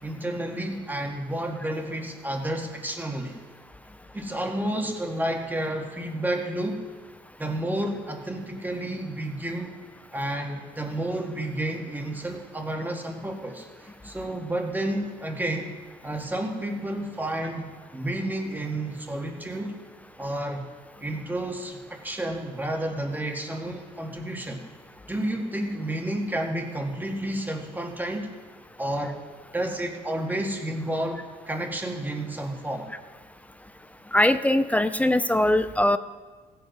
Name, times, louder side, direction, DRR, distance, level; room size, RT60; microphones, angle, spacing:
voice 1, 0.0-3.4 4.1-6.8 7.4-9.8 10.1-15.7 16.0-19.8 20.2-20.6 21.0-24.6 25.1-28.3 28.8-29.2 29.5-32.9, right 1 dB, 10° right, 2 dB, 1.8 m, -31 dB
voice 2, 34.1-36.0, left 1 dB, 10° left, 12 dB, 0.4 m, -21 dB
16.0 x 8.0 x 5.2 m, 1.4 s
cardioid pair, 110°, 17 cm